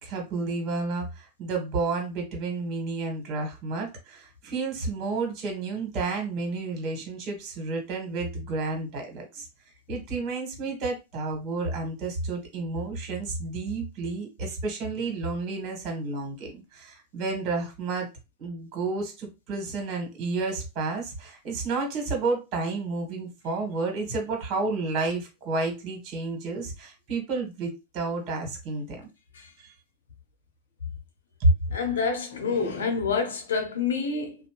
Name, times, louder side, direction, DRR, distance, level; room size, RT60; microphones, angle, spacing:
voice 1, 0.0-9.4 9.9-18.1 18.4-29.1 31.4-31.5, right 3 dB, 45° right, 1.5 m, -31 dB
voice 2, 31.7-34.4, left 5 dB, 85° left, 0.8 m, -27 dB
2.6 x 2.1 x 3.0 m
hypercardioid pair, 110°, 0 cm